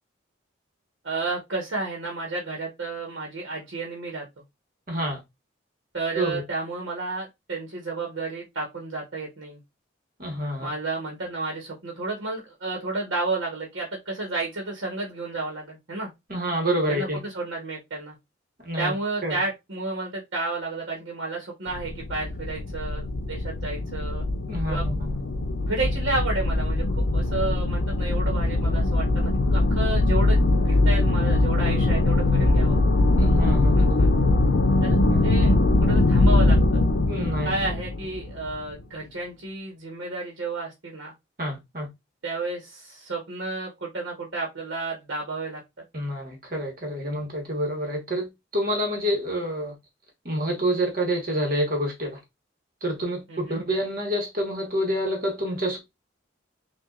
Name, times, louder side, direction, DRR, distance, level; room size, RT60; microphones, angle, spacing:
voice 1, 1.0-4.2 5.9-9.6 10.6-16.1 16.9-18.1 18.8-24.2 24.7-24.8 25.7-32.8 33.8-34.1 34.8-35.0 35.2-35.5 35.8-36.8 37.4-41.1 42.2-45.6 53.3-53.6, right 3 dB, 75° right, 1.1 m, -31 dB
voice 2, 4.9-5.2 6.2-6.4 10.2-10.7 16.3-17.2 18.6-18.9 19.2-19.3 24.5-25.1 33.2-34.0 35.1-35.3 37.1-37.5 41.4-41.9 45.9-49.7 50.2-52.2 52.8-55.8, equal, 45° right, 1.3 m, -28 dB
sound 1, 21.7-38.7, left 2 dB, 85° left, 0.6 m, -22 dB
5.8 x 2.4 x 2.4 m
head